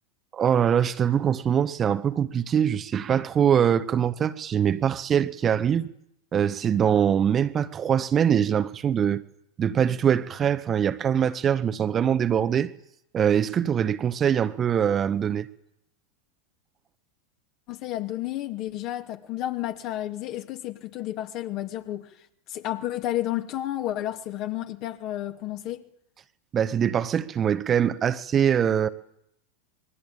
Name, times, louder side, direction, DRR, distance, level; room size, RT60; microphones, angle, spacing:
voice 1, 0.3-5.9 6.3-9.2 9.6-12.7 13.1-15.5 26.5-28.9, right 8 dB, 25° right, 1.4 m, -23 dB
voice 2, 17.7-22.1 22.5-25.9, left 13 dB, 45° left, 2.7 m, -31 dB
27.0 x 22.0 x 8.9 m
figure-of-eight pair, 90°, 0 cm